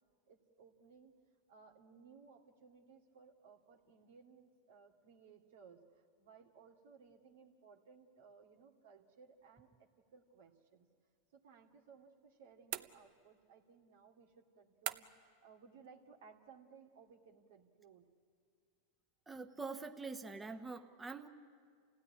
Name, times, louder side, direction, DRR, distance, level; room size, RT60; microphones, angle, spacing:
voice 1, 0.3-1.1 1.5-10.9 11.3-18.1, right 5 dB, 75° right, 3 dB, 2.5 m, -61 dB
sound 1, 12.7-13.4 14.9-15.4, right 14 dB, 60° right, 0.8 m, -43 dB
voice 2, 19.3-21.3, right 4 dB, 15° right, 6 dB, 1.1 m, -45 dB
28.5 x 16.5 x 10.0 m, 2.1 s
hypercardioid pair, 115°, 0 cm